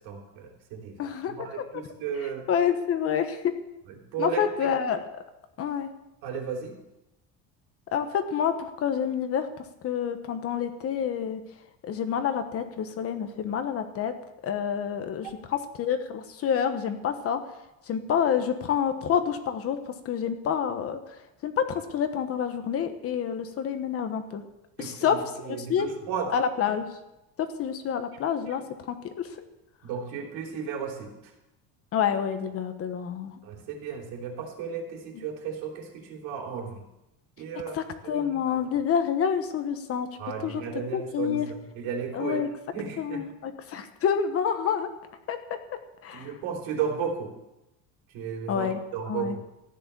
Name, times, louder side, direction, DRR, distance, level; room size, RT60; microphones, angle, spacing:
voice 1, 0.0-1.0 1.3-2.5 3.9-4.7 6.2-6.7 24.8-26.4 29.8-31.3 33.4-36.8 37.4-37.8 38.0-38.6 40.2-42.5 42.7-43.2 46.1-47.3 48.1-49.3, right 6 dB, 70° right, 1 dB, 3.4 m, -34 dB
voice 2, 1.0-1.3 2.5-3.5 4.2-5.0 5.6-5.9 7.9-11.4 11.8-14.1 14.4-17.4 17.9-21.2 21.4-24.4 24.8-25.2 25.4-25.9 26.3-26.9 27.4-28.6 28.9-29.3 31.9-33.4 37.7-40.1 40.4-40.6 40.9-41.5 42.1-42.5 43.0-44.9 45.3-45.4 46.0-46.3 48.5-48.8 49.0-49.3, left 8 dB, 35° left, 8 dB, 1.2 m, -28 dB
14.5 x 10.0 x 6.8 m, 0.93 s
cardioid pair, 160°, 38 cm